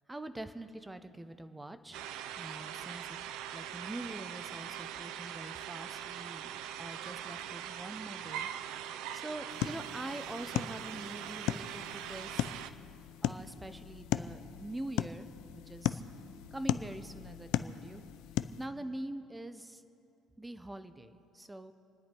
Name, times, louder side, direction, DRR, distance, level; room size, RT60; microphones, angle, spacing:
voice 1, 0.1-2.0 2.4-3.2 3.5-6.5 6.8-12.6 13.2-16.0 16.5-18.0 18.6-19.8 20.4-21.7, right 1 dB, 10° right, 10 dB, 0.8 m, -44 dB
sound 1, 1.9-12.7, right 10 dB, 80° right, 0.6 m, -42 dB
sound 2, 9.5-18.7, left 13 dB, 75° left, 0.5 m, -37 dB
28.0 x 10.0 x 4.5 m, 2.6 s
cardioid pair, 135°, 0 cm